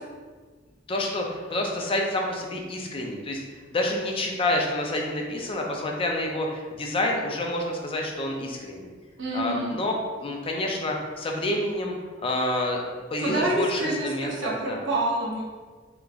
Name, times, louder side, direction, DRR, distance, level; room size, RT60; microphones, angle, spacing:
voice 1, 0.9-3.4 3.7-8.9 9.3-11.9 12.2-12.8 13.1-14.8, left 1 dB, 30° left, 1 dB, 0.4 m, -28 dB
voice 2, 9.2-9.8 13.2-15.4, right 1 dB, 75° right, -4 dB, 0.8 m, -27 dB
3.5 x 2.9 x 2.4 m, 1.4 s
head